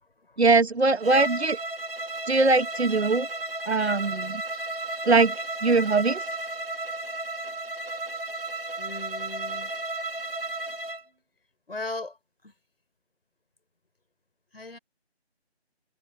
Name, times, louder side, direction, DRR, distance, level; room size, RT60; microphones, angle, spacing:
voice 1, 0.4-1.6 2.3-3.3 3.7-4.4 5.1-5.4 5.6-6.2, right 3 dB, 75° right, 1.4 m, -21 dB
Bowed string instrument, 1.0-11.0, right 2 dB, 60° right, 2.7 m, -33 dB
voice 2, 8.8-9.7 11.7-12.2 12.4-12.5 14.5-14.8, left 3 dB, 60° left, 6.0 m, -37 dB
figure-of-eight pair, 170°, 33 cm